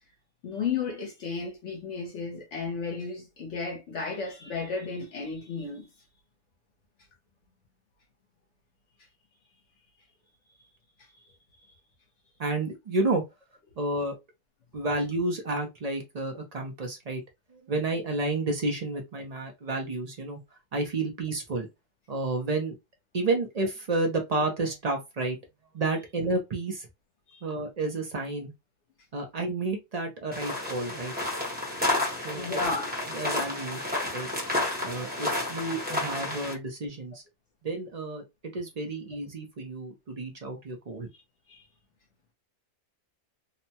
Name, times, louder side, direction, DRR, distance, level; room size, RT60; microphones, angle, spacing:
voice 1, 0.4-5.9 27.3-27.4 32.4-32.9 35.8-36.0 41.5-41.6, left 4 dB, 60° left, 0.9 m, -33 dB
voice 2, 12.4-13.2 13.8-14.1 14.7-17.2 17.5-20.4 20.7-21.7 22.1-22.7 23.1-25.4 25.7-26.9 27.4-28.5 29.1-31.1 32.2-32.6 33.1-34.3 34.8-37.2 37.6-38.2 38.5-41.1, right 2 dB, 55° right, 0.4 m, -31 dB
sound 1, 30.3-36.5, left 2 dB, 10° right, 0.7 m, -31 dB
2.8 x 2.1 x 2.7 m
omnidirectional pair, 1.5 m